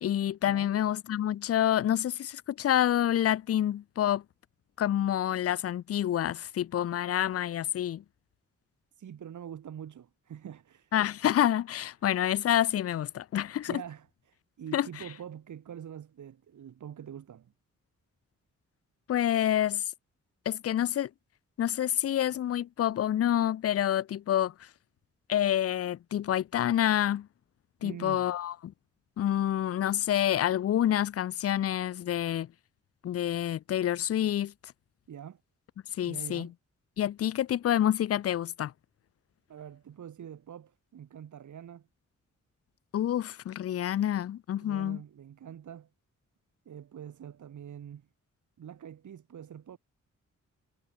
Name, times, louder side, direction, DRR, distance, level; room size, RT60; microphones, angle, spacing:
voice 1, 0.0-4.2 4.8-8.0 10.9-13.8 14.7-14.9 19.1-19.8 20.5-21.1 21.6-24.5 25.3-27.3 27.8-28.7 29.2-32.5 33.0-34.7 36.0-36.5 37.0-38.7 42.9-45.0, left 11 dB, 55° left, 0.5 m, -28 dB
voice 2, 9.0-10.9 13.7-17.5 27.8-28.3 35.1-35.4 36.0-36.5 39.5-41.9 44.6-45.9 46.7-48.1 48.6-49.8, right 9 dB, 80° right, 2.2 m, -45 dB
wide cardioid pair, 165°, 30 cm